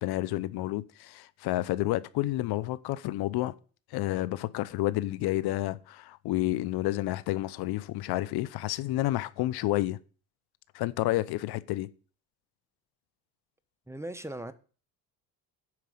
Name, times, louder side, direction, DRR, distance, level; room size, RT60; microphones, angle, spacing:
voice 1, 0.0-3.5 3.9-10.0 10.7-11.9, left 16 dB, 75° left, 0.7 m, -30 dB
voice 2, 13.9-14.5, right 1 dB, 5° right, 0.9 m, -38 dB
10.5 x 4.7 x 7.8 m
cardioid pair, 90°, 39 cm